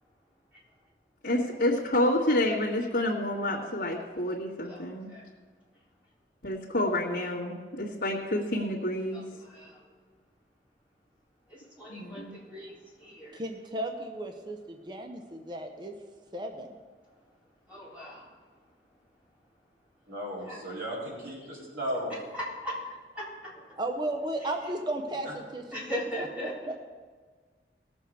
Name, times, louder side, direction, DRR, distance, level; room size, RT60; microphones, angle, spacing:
voice 1, 1.2-5.1 6.4-9.2 11.9-12.3, left 1 dB, 70° left, -8 dB, 1.6 m, -28 dB
voice 2, 4.6-5.2 9.1-9.8 11.5-13.4 17.7-18.3 20.4-20.6 22.3-23.8 24.4-24.7 25.7-26.7, equal, 10° right, -8 dB, 3.7 m, -40 dB
voice 3, 13.3-15.9 16.3-16.7 23.8-26.3, right 1 dB, 25° right, 4 dB, 0.7 m, -35 dB
voice 4, 20.1-22.1 25.3-25.4, equal, 85° right, -5 dB, 4.0 m, -35 dB
18.0 x 7.0 x 4.7 m, 1.5 s
head